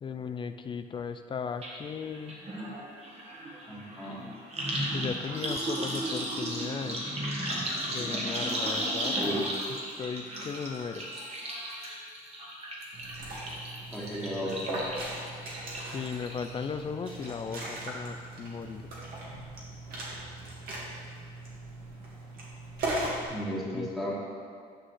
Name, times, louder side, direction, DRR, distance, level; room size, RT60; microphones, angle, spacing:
voice 1, 0.0-2.4 4.9-7.0 7.9-9.1 10.0-11.1 15.9-18.8 23.7-23.9, left 6 dB, 30° left, 9 dB, 0.4 m, -36 dB
sound 1, 1.6-1.7 2.0-16.6 17.0-17.5 17.8-17.9, right 1 dB, 40° right, 1.6 m, -35 dB
voice 2, 3.7-4.3 9.2-9.5 13.9-14.8 23.3-24.1, equal, ahead, -8 dB, 1.7 m, -34 dB
Liquid, 12.9-23.2, right 1 dB, 65° right, 1.9 m, -39 dB
9.9 x 6.2 x 3.2 m, 2.1 s
cardioid pair, 110°, 17 cm